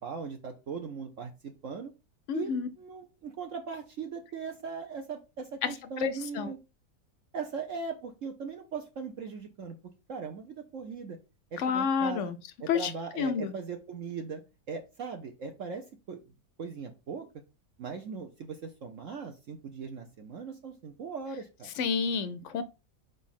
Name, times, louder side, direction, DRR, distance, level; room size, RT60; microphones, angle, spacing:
voice 1, 0.0-1.9 2.3-6.6 7.3-9.7 10.1-11.2 11.5-12.3 12.6-14.4 14.7-16.2 16.6-17.3 17.8-21.7, right 5 dB, 55° right, 1.0 m, -39 dB
voice 2, 2.3-2.7 5.6-6.5 11.6-12.4 12.7-12.9 13.2-13.5 21.8-22.6, left 6 dB, 60° left, 0.8 m, -29 dB
4.8 x 4.1 x 5.6 m
omnidirectional pair, 1.8 m